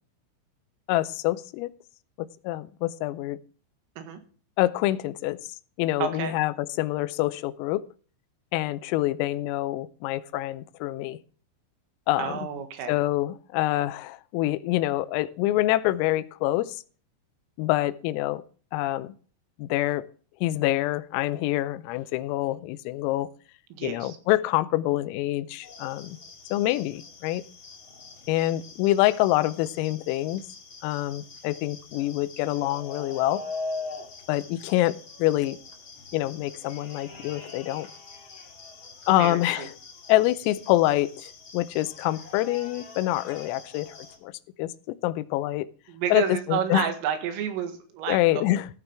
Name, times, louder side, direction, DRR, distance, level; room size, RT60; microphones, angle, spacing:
voice 1, 0.9-1.7 2.2-3.4 4.6-5.4 5.8-7.8 8.5-11.2 12.1-12.4 12.9-16.8 17.6-18.4 18.7-19.1 19.6-20.1 20.4-23.3 23.8-26.2 26.5-27.4 28.3-30.4 30.8-33.4 34.3-35.6 36.1-37.9 39.1-39.7 40.1-44.0 44.2-44.3 44.6-45.7 46.1-46.9 48.1-48.7, left 16 dB, 90° left, 15 dB, 3.3 m, -26 dB
voice 2, 6.0-6.3 12.2-13.0 23.7-24.2 39.2-39.7 45.9-48.4, right 8 dB, 80° right, 7 dB, 4.2 m, -30 dB
sound 1, 25.6-44.2, left 3 dB, 50° left, 1.5 m, -43 dB
15.0 x 9.6 x 3.4 m, 0.42 s
omnidirectional pair, 5.9 m